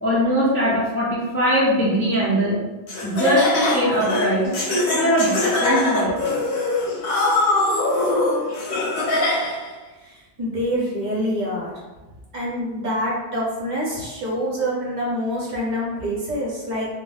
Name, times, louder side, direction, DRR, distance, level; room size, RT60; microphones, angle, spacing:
voice 1, 0.0-2.6 3.0-4.4 4.9-5.3 5.6-6.2, equal, 20° left, -7 dB, 0.4 m, -20 dB
Laughter, 2.9-9.7, left 2 dB, 65° left, 0.9 m, -22 dB
voice 2, 10.0-11.7 12.3-16.9, equal, 50° right, -5 dB, 0.8 m, -26 dB
2.6 x 2.2 x 3.2 m, 1.2 s
omnidirectional pair, 1.1 m